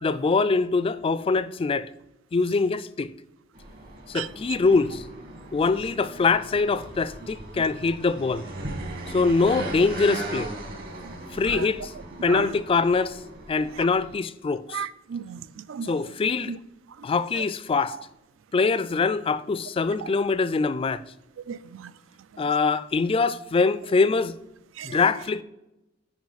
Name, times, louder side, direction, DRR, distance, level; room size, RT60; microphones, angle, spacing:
voice 1, 0.0-1.9 2.3-3.1 4.1-5.0 5.5-8.5 9.1-10.5 11.3-11.9 12.2-13.2 13.5-14.8 15.8-16.6 17.0-18.0 18.5-21.0 22.4-24.4 24.8-25.4, left 4 dB, 30° left, 0.3 m, -23 dB
sound 1, 3.5-14.2, right 1 dB, 50° right, 1.6 m, -38 dB
voice 2, 14.7-15.4 15.7-15.9 16.5-16.6 21.5-21.9 24.8-25.0, right 7 dB, 85° right, 0.4 m, -33 dB
9.6 x 5.0 x 4.0 m
head